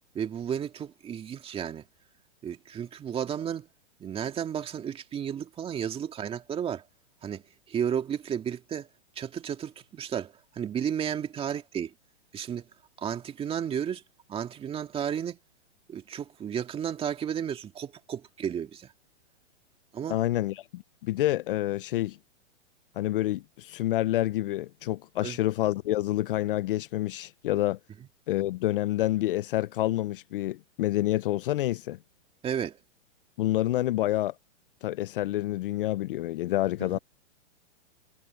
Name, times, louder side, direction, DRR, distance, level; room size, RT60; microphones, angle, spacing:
voice 1, 0.1-1.8 2.4-3.7 4.0-6.8 7.2-7.4 7.7-8.9 9.2-11.9 12.3-12.6 13.0-14.0 14.3-15.4 15.9-18.9 19.9-20.2 25.2-25.4 32.4-32.8 36.9-37.0, right 8 dB, 15° right, 2.2 m, -33 dB
voice 2, 20.1-22.2 23.0-27.8 28.3-32.0 33.4-34.3 34.8-37.0, left 15 dB, 50° left, 0.7 m, -28 dB
hypercardioid pair, 145°, 35 cm